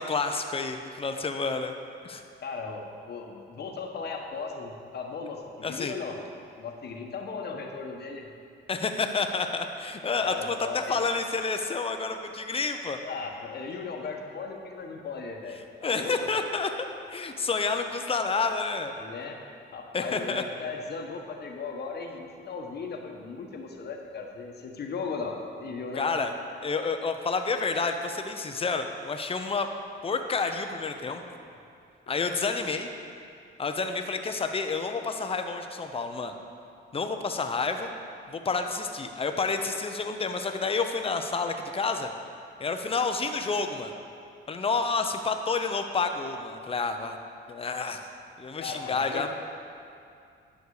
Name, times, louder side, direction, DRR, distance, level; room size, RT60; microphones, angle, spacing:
voice 1, 0.0-1.7 2.0-2.2 5.6-5.9 8.7-13.0 15.8-18.9 19.9-20.4 25.9-26.4 26.6-29.7 30.0-31.2 32.1-32.9 33.6-36.3 36.9-37.9 38.3-42.1 42.6-43.9 44.5-47.2 47.5-48.0 48.4-49.3, left 4 dB, 30° left, 6 dB, 0.8 m, -29 dB
voice 2, 2.4-6.2 6.6-8.3 10.2-11.0 13.0-16.1 19.0-19.4 19.7-26.1 48.6-49.3, left 4 dB, 55° left, 2 dB, 1.3 m, -37 dB
11.0 x 6.6 x 4.9 m, 2.5 s
cardioid pair, 90°, 20 cm